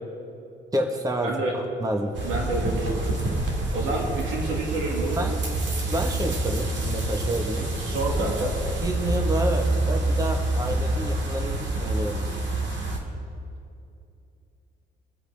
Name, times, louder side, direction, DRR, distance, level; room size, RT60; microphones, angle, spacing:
voice 1, 0.7-2.2 5.2-5.3 5.6-7.6 8.2-8.3 8.8-12.4, right 1 dB, 20° right, 3 dB, 1.2 m, -29 dB
voice 2, 1.2-1.5 2.2-3.2 3.7-5.3 7.8-8.6, right 2 dB, 90° right, -1 dB, 2.0 m, -28 dB
sound 1, 2.1-13.0, right 2 dB, 65° right, 2.2 m, -27 dB
23.0 x 8.0 x 3.4 m, 2.7 s
cardioid pair, 90°, 20 cm